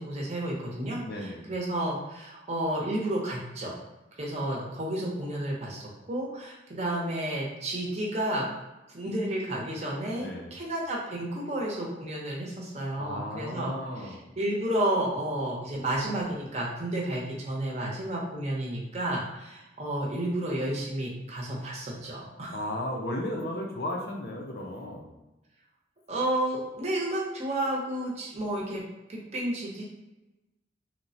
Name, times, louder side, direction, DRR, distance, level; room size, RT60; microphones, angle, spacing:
voice 1, 0.0-3.8 4.2-8.5 8.9-22.6 26.1-28.8 29.1-29.8, right 1 dB, 35° right, -3 dB, 0.6 m, -31 dB
voice 2, 1.0-1.5 10.2-10.5 13.0-14.2 22.5-25.1, left 1 dB, 55° left, 1 dB, 0.5 m, -35 dB
3.1 x 2.1 x 2.6 m, 1.0 s
head